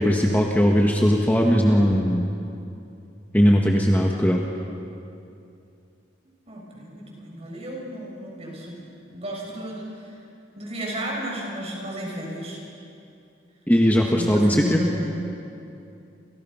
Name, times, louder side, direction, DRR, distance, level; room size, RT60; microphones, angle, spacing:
voice 1, 0.0-2.3 3.3-4.4 13.7-14.8, equal, 10° left, 0 dB, 1.6 m, -19 dB
voice 2, 6.5-10.2 10.6-12.6 14.1-15.0, equal, 35° right, -2 dB, 7.2 m, -33 dB
30.0 x 28.0 x 5.8 m, 2.6 s
head